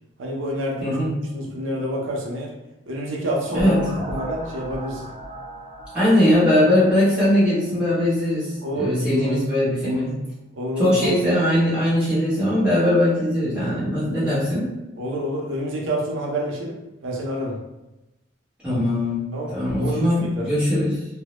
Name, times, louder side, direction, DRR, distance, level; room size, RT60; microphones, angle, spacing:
voice 1, 0.2-1.0 1.3-2.5 2.9-3.7 4.1-5.1 8.6-9.4 9.8-10.0 10.5-11.1 13.8-13.9 14.2-14.4 15.0-16.8 17.0-17.6 19.3-19.5 19.8-20.1 20.3-20.5, equal, 85° right, -2 dB, 0.5 m, -28 dB
voice 2, 0.8-1.2 3.5-3.9 5.9-10.1 10.8-14.7 18.6-21.1, left 1 dB, 5° right, -11 dB, 0.9 m, -20 dB
sound 1, 3.5-8.2, right 1 dB, 35° right, 0.7 m, -37 dB
2.1 x 2.0 x 2.9 m, 0.97 s
head